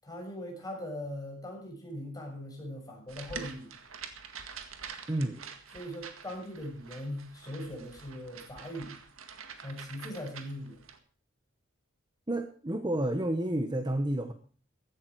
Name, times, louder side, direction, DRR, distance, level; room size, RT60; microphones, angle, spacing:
voice 1, 0.0-3.7 5.7-8.9 9.6-10.8, left 1 dB, 20° left, 0 dB, 6.7 m, -40 dB
sound 1, 3.1-11.0, right 6 dB, 80° right, 1.9 m, -46 dB
voice 2, 5.1-5.4 12.3-14.3, right 1 dB, 20° right, 7 dB, 1.1 m, -30 dB
15.5 x 12.5 x 4.7 m, 0.41 s
head